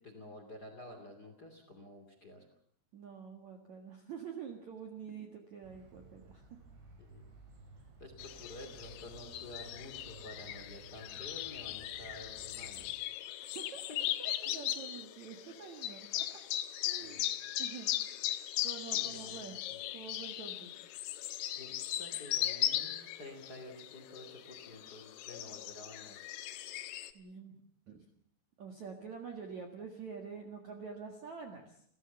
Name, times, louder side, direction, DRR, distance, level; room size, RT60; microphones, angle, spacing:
voice 1, 0.0-2.5 7.0-7.2 8.0-13.0 17.0-17.2 18.9-19.8 21.5-26.3, left 1 dB, 25° left, 5 dB, 2.3 m, -50 dB
voice 2, 2.9-6.5 13.4-13.8 14.2-16.2 16.9-19.6 19.9-20.8 27.1-27.6 27.9-28.1 28.6-31.8, right 6 dB, 55° right, 3 dB, 2.2 m, -47 dB
sound 1, 5.6-12.9, right 4 dB, 75° right, 6.8 m, -56 dB
sound 2, 8.2-27.1, left 13 dB, 80° left, 3.5 m, -38 dB
29.5 x 15.0 x 7.0 m, 0.63 s
omnidirectional pair, 5.7 m